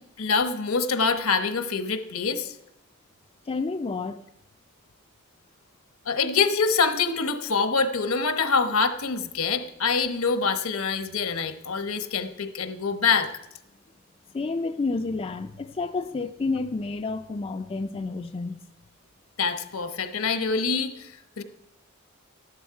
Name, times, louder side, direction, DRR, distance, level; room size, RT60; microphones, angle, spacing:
voice 1, 0.2-2.6 6.1-13.3 19.4-21.4, left 5 dB, 75° left, 1.0 m, -25 dB
voice 2, 3.4-4.2 14.3-18.6, left 3 dB, 25° left, 0.3 m, -30 dB
13.0 x 11.0 x 4.7 m
head